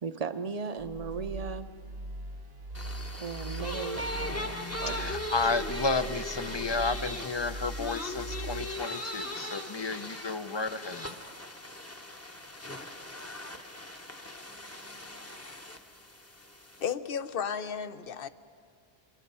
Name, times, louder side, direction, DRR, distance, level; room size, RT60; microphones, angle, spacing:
voice 1, 0.0-1.7 3.2-5.1, right 5 dB, 40° right, 10 dB, 0.8 m, -37 dB
sound 1, 0.8-8.9, right 2 dB, 75° right, 1.8 m, -41 dB
sound 2, 2.7-16.9, left 1 dB, 15° left, 0.9 m, -39 dB
voice 2, 4.9-11.2, left 4 dB, 30° left, 11 dB, 0.6 m, -32 dB
voice 3, 16.8-18.3, left 7 dB, 65° left, 13 dB, 1.0 m, -33 dB
28.0 x 25.5 x 5.6 m, 2.2 s
omnidirectional pair, 1.1 m